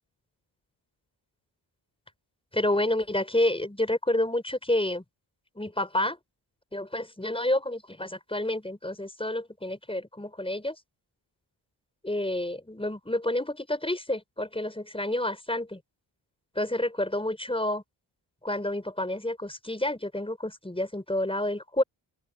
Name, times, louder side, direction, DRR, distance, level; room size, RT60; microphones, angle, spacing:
voice 1, 2.5-5.0 5.6-6.2 6.7-10.8 12.0-15.8 16.6-17.8 18.4-21.8, left 1 dB, 10° left, 5.5 m, -29 dB
open air
cardioid pair, 65°, 48 cm